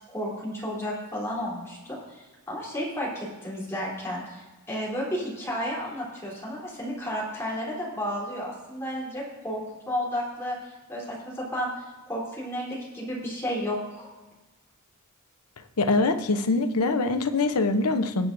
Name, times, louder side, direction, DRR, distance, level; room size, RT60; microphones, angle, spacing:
voice 1, 0.1-9.6 9.9-10.6 10.9-11.7 12.1-14.1, equal, 10° left, -5 dB, 3.2 m, -32 dB
voice 2, 15.8-18.3, left 3 dB, 80° left, 9 dB, 0.7 m, -24 dB
20.0 x 7.6 x 2.6 m, 1.2 s
head